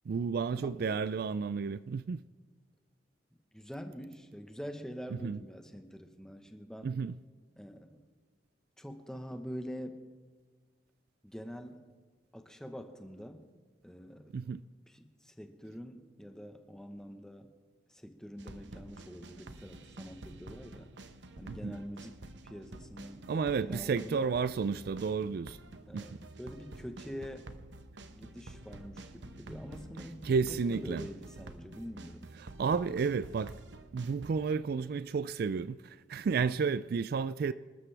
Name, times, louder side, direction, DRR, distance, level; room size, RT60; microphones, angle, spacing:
voice 1, 0.1-2.2 5.2-5.4 6.8-7.2 14.3-14.6 21.5-21.7 23.3-25.6 25.9-26.0 30.2-31.0 32.4-33.5 33.9-37.5, right 5 dB, 55° right, 0.3 m, -32 dB
voice 2, 0.6-0.9 3.5-6.9 7.6-8.0 8.8-10.0 11.2-11.8 12.3-13.4 13.8-14.3 14.9-17.5 17.9-20.9 21.4-22.2 22.4-23.3 23.6-24.4 25.9-27.8 28.1-32.3, equal, 5° left, 1.1 m, -45 dB
sound 1, 18.4-34.3, right 2 dB, 75° right, 1.0 m, -49 dB
26.0 x 13.0 x 3.4 m
head